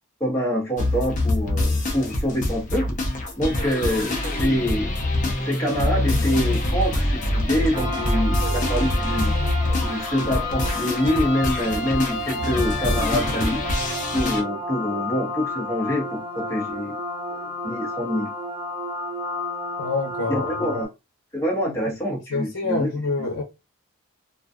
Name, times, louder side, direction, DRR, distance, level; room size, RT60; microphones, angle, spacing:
voice 1, 0.2-3.0 3.4-4.9 5.4-9.3 9.8-13.7 14.1-17.0 17.3-18.3 20.3-20.9 21.3-22.9 23.2-23.3, equal, 15° left, 0.9 m, -26 dB
sound 1, 0.8-14.4, left 1 dB, 35° left, 0.5 m, -25 dB
sound 2, 7.7-20.9, left 2 dB, 15° right, 0.4 m, -31 dB
voice 2, 19.8-20.8 21.7-21.8 22.3-23.4, left 3 dB, 80° left, 0.7 m, -27 dB
2.5 x 2.3 x 2.3 m
head